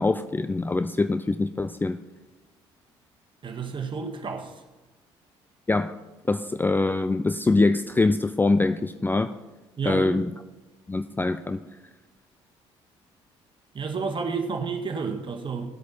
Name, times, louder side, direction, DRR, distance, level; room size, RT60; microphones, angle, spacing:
voice 1, 0.0-2.0 5.7-5.9 6.3-9.3 9.8-10.3 10.9-11.6, left 3 dB, 15° left, 0.4 m, -24 dB
voice 2, 3.4-4.5 9.8-10.2 13.7-15.7, right 5 dB, 35° right, 1.6 m, -30 dB
17.0 x 8.3 x 4.4 m
figure-of-eight pair, 50°, 14 cm